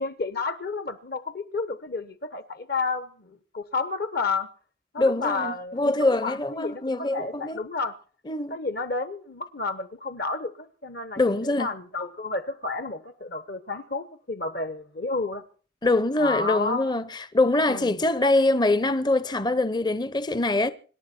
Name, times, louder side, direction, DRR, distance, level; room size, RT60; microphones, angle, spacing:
voice 1, 0.0-4.5 4.9-5.9 6.2-7.9 8.5-11.2 11.6-15.4 16.2-16.9 17.7-17.9, left 3 dB, 50° left, 1.0 m, -31 dB
voice 2, 5.0-7.6 8.3-8.6 11.2-11.7 15.8-20.7, left 2 dB, 20° left, 0.7 m, -24 dB
26.0 x 10.5 x 4.4 m
head